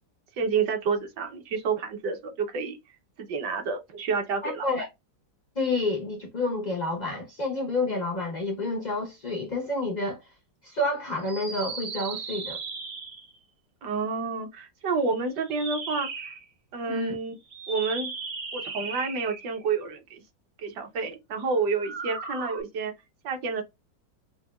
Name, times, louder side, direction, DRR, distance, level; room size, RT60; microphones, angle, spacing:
voice 1, 0.4-2.8 3.2-4.7 13.8-16.3 16.7-17.3 17.7-18.1 18.5-20.2 20.6-22.9 23.2-23.6, right 4 dB, 70° right, 1.4 m, -29 dB
voice 2, 4.4-4.9 5.6-10.2 10.6-12.6 16.9-17.2, left 2 dB, 85° left, 0.3 m, -29 dB
sound 1, 11.2-13.4 15.4-16.4 17.5-19.6 21.7-22.6, right 4 dB, 50° right, 0.9 m, -37 dB
5.7 x 2.2 x 2.2 m
omnidirectional pair, 2.0 m